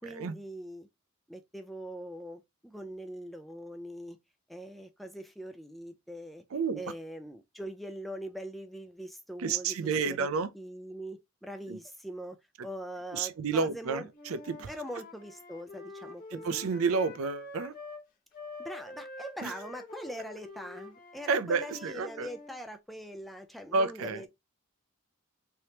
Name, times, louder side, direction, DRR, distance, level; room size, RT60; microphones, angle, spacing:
voice 1, 0.0-0.9 1.3-4.2 4.5-6.4 6.7-10.3 10.5-12.4 12.6-14.1 14.7-16.6 18.6-24.3, equal, ahead, 0.3 m, -42 dB
voice 2, 6.5-6.8 9.4-10.5 11.7-11.8 13.1-14.7 16.3-17.7 19.4-19.5 21.3-22.3 23.7-24.2, right 4 dB, 80° right, 0.5 m, -30 dB
Wind instrument woodwind instrument, 14.1-18.0 18.3-22.6, left 2 dB, 40° left, 0.8 m, -47 dB
3.3 x 2.9 x 2.8 m
head